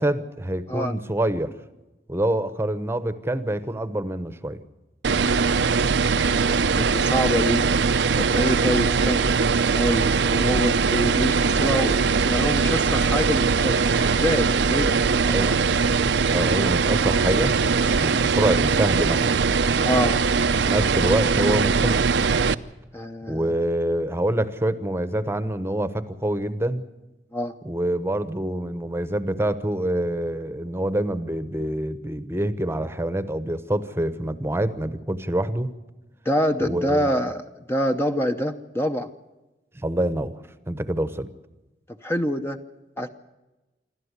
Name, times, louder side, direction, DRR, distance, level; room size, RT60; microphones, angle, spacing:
voice 1, 0.0-1.5 2.1-4.6 15.3-15.5 16.3-17.5 18.0-19.4 20.6-22.0 23.3-26.8 27.6-35.7 36.6-37.1 39.7-40.4 40.7-41.3, right 1 dB, 15° right, 12 dB, 1.0 m, -26 dB
sound 1, 5.0-22.5, right 5 dB, 75° right, 0.6 m, -21 dB
voice 2, 6.4-7.6 8.2-9.3 9.7-15.6 19.8-20.2 22.9-23.6 27.3-27.6 36.2-37.4 37.7-39.1 42.0-42.6 43.0-43.1, equal, 15° left, 6 dB, 0.8 m, -26 dB
27.0 x 13.0 x 8.1 m, 1.1 s
head